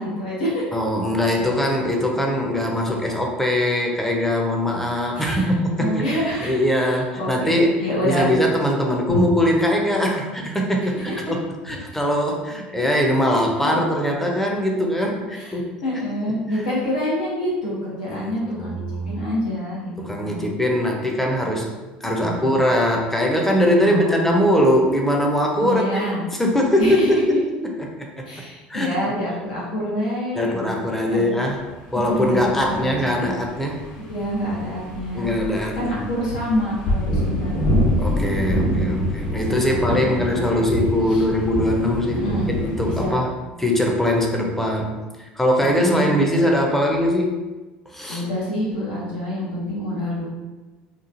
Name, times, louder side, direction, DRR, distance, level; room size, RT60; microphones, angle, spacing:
voice 1, 0.0-0.6 5.1-5.5 5.8-8.3 10.9-11.3 13.5-13.8 15.3-18.7 19.0-20.5 22.2-22.6 23.8-24.5 25.6-26.2 26.8-27.4 28.2-30.7 31.1-31.4 32.0-33.3 34.0-35.4 35.7-37.7 38.5-39.0 39.5-40.7 41.1-41.2 42.1-42.5 42.8-43.2 45.6-46.1 48.1-50.3, equal, 75° left, -6 dB, 1.0 m, -27 dB
voice 2, 0.7-6.1 6.4-15.7 18.1-19.1 20.0-21.8 22.0-26.0 26.3-28.3 28.7-29.0 30.3-31.6 31.9-33.9 35.1-36.0 38.0-43.3 43.6-47.5 47.9-48.2, equal, 5° left, 0 dB, 0.6 m, -21 dB
sound 1, 31.7-43.1, equal, 60° left, 1.3 m, -26 dB
3.0 x 2.3 x 2.5 m, 1.2 s
hypercardioid pair, 70°, 5 cm